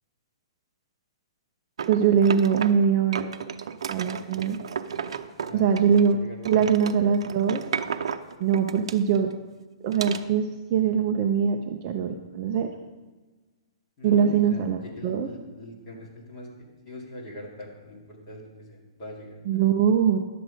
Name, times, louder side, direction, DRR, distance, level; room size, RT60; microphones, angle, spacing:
sound 1, 1.8-2.9 3.1-6.1 6.4-9.4 9.9-10.2, right 7 dB, 70° right, 0.6 m, -33 dB
voice 1, 1.9-3.4 3.9-4.6 5.5-6.2 6.5-7.6 8.4-9.3 9.8-12.7 14.0-15.3 19.5-20.2, right 7 dB, 25° right, 4 dB, 0.4 m, -22 dB
voice 2, 5.4-6.8 14.0-16.5 16.9-19.4, left 1 dB, 20° left, -4 dB, 2.2 m, -41 dB
11.0 x 7.7 x 5.0 m, 1.3 s
hypercardioid pair, 180°, 3 cm